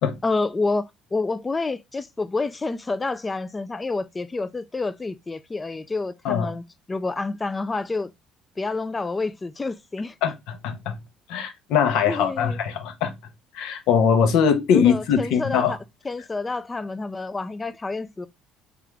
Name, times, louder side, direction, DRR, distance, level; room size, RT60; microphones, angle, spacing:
voice 1, 0.2-8.1 8.6-10.2 12.1-12.6 14.7-15.8 16.0-18.3, left 3 dB, 20° left, 0.4 m, -28 dB
voice 2, 10.2-11.0 11.3-13.1 13.5-15.8, left 7 dB, 75° left, 0.9 m, -21 dB
3.7 x 3.5 x 3.2 m
supercardioid pair, 90°, 0 cm